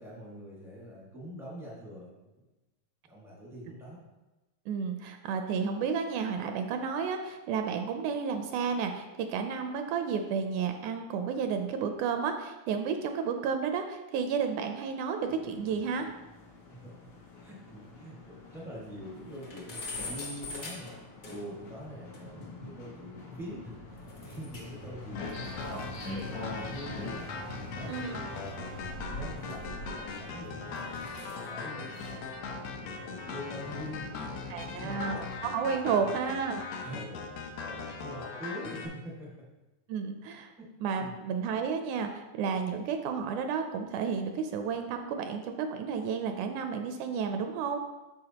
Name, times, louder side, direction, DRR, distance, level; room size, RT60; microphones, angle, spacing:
voice 1, 0.0-2.1 3.0-4.0 16.7-17.0 17.4-25.6 26.0-27.3 27.5-28.7 29.1-31.1 31.4-32.2 32.7-34.1 34.8-35.2 35.8-36.2 36.8-39.5 40.6-40.7 41.0-41.2, equal, ahead, -5 dB, 0.5 m, -44 dB
voice 2, 4.7-16.1 27.9-28.2 34.5-36.6 39.9-40.5 40.8-47.8, right 6 dB, 80° right, 6 dB, 1.9 m, -32 dB
sound 1, 15.2-35.2, left 2 dB, 90° left, 0.7 m, -45 dB
Metal Door Opening, 17.3-17.4 17.8-17.9 18.2-18.3 18.6-18.7 19.1-21.7 22.1-22.2 24.1-24.8 25.1-27.8 28.6-30.2 30.7-31.5, left 1 dB, 50° left, 1.1 m, -44 dB
sound 2, 25.2-38.9, left 4 dB, 75° left, 1.7 m, -40 dB
12.5 x 4.5 x 2.9 m, 1.1 s
omnidirectional pair, 3.6 m